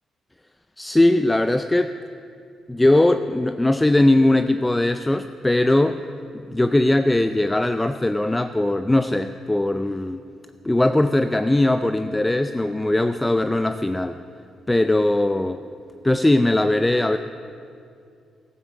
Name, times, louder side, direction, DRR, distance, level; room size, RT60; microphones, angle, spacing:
voice 1, 0.8-1.9 2.7-6.0 6.5-10.2 10.6-14.2 14.7-15.6 16.0-17.2, left 1 dB, 10° left, 9 dB, 0.4 m, -20 dB
13.0 x 9.4 x 7.2 m, 2.4 s
cardioid pair, 90°, 0 cm